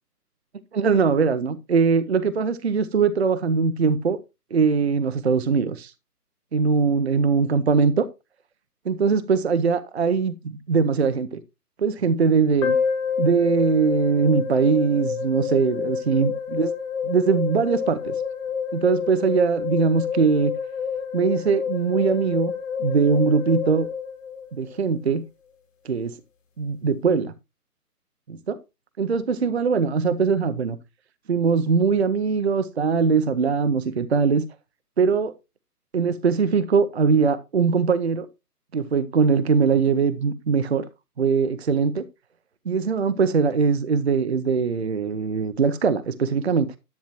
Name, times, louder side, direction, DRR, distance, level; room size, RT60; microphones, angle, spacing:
voice 1, 0.7-4.2 4.5-5.9 6.5-8.1 8.8-11.4 11.8-12.8 13.2-16.7 17.0-18.1 18.7-20.5 21.1-22.5 22.8-23.9 24.5-25.2 25.8-26.1 26.6-27.3 28.3-28.6 29.0-30.8 31.3-34.4 35.0-35.3 35.9-38.3 38.7-40.8 41.2-42.0 42.7-46.7, right 5 dB, 45° right, 0.7 m, -21 dB
sound 1, 12.6-24.8, left 6 dB, 50° left, 2.5 m, -28 dB
10.5 x 9.0 x 3.0 m
figure-of-eight pair, 145°, 47 cm